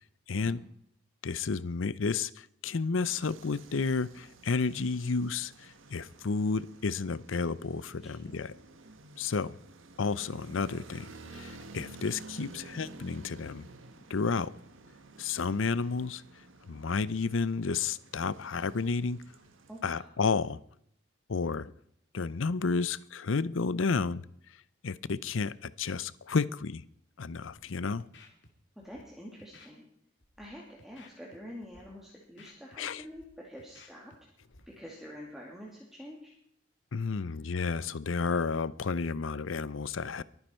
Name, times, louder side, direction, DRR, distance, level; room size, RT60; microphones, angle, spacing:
voice 1, 0.3-0.6 1.2-8.5 9.2-9.5 10.0-13.7 14.1-14.5 15.2-16.2 16.7-19.2 19.8-20.6 21.3-21.7 22.1-24.2 24.8-26.8 27.2-28.1 32.8-33.0 36.9-40.2, left 4 dB, 90° left, 0.6 m, -31 dB
sound 1, 3.0-19.8, right 2 dB, 90° right, 1.6 m, -52 dB
voice 2, 19.7-20.1 28.8-29.8 30.4-34.1 34.7-36.3, equal, ahead, 2.5 m, -47 dB
Scratching (performance technique), 27.5-27.6 28.0-28.5 28.8-29.0 29.4-29.7 30.2-30.4 30.8-31.4 31.6-31.8 32.2-33.2 33.6-34.2 34.4-34.6, left 3 dB, 70° left, 2.5 m, -56 dB
23.0 x 9.9 x 4.5 m
head